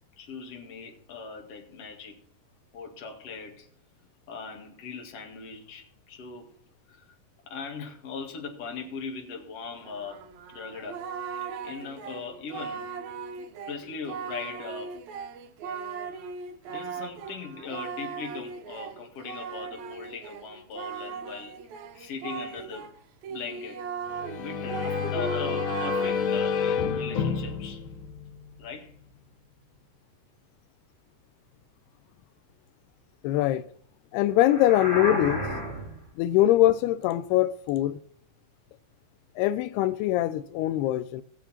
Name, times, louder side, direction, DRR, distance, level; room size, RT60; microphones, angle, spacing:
voice 1, 0.2-2.2 2.7-3.7 4.3-6.5 6.9-7.1 7.5-10.2 10.5-11.0 11.4-12.9 13.7-15.0 16.7-21.6 21.9-22.9 23.3-23.8 24.1-27.8 28.6-28.9, left 5 dB, 45° left, 2.7 m, -39 dB
Singing, 9.8-22.9 23.2-26.5, right 6 dB, 85° right, 1.6 m, -38 dB
sound 1, 24.1-28.8, left 6 dB, 70° left, 3.2 m, -29 dB
voice 2, 33.2-33.6 34.1-35.5 36.2-38.0 39.4-41.2, left 14 dB, 90° left, 2.7 m, -23 dB
sound 2, 34.4-36.0, equal, 15° left, 5.1 m, -31 dB
18.5 x 7.3 x 4.3 m
omnidirectional pair, 4.5 m